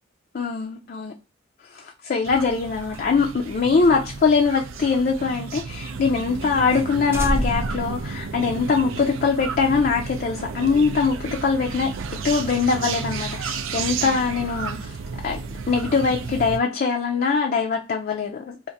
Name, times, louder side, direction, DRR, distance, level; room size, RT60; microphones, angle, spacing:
voice 1, 0.3-1.1 1.7-11.9 12.2-15.0 15.2-15.4 15.7-18.6, left 5 dB, 45° left, 0.4 m, -22 dB
sound 1, 2.2-16.6, right 5 dB, 80° right, 0.4 m, -32 dB
sound 2, 2.8-5.6 5.9-6.0 6.4-6.5 6.7-6.9 7.1-8.8, equal, 10° right, 0.5 m, -30 dB
2.5 x 2.5 x 3.9 m
head